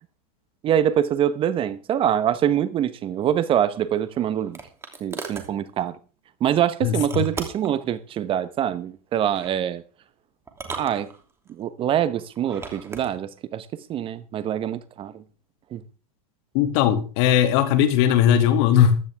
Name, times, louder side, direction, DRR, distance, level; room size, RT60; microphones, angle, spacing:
voice 1, 0.6-4.6 5.0-6.0 6.4-9.8 10.8-11.1 11.6-15.2 15.7-15.8, right 10 dB, 30° right, 1.0 m, -24 dB
sound 1, 3.7-5.5 6.9-7.8 9.1-9.6 10.5-11.5 12.3-13.1, right 4 dB, 15° right, 2.9 m, -37 dB
voice 2, 6.8-7.2 16.5-19.0, left 9 dB, 55° left, 2.5 m, -19 dB
15.0 x 12.5 x 3.5 m
hypercardioid pair, 125°, 19 cm